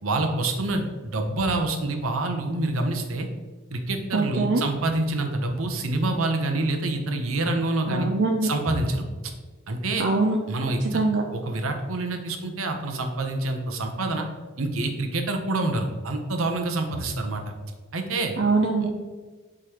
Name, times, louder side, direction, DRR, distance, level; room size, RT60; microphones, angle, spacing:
voice 1, 0.0-3.3 3.7-8.1 8.4-9.3 9.7-10.0 10.5-11.0 11.3-14.3 14.6-17.5 17.9-18.3 18.8-18.9, right 2 dB, 85° right, 4 dB, 0.8 m, -27 dB
voice 2, 4.1-4.6 7.9-8.5 10.0-10.4 10.9-11.2 18.4-18.9, right 3 dB, 60° right, 2 dB, 0.5 m, -23 dB
6.7 x 4.9 x 3.0 m, 1.4 s
head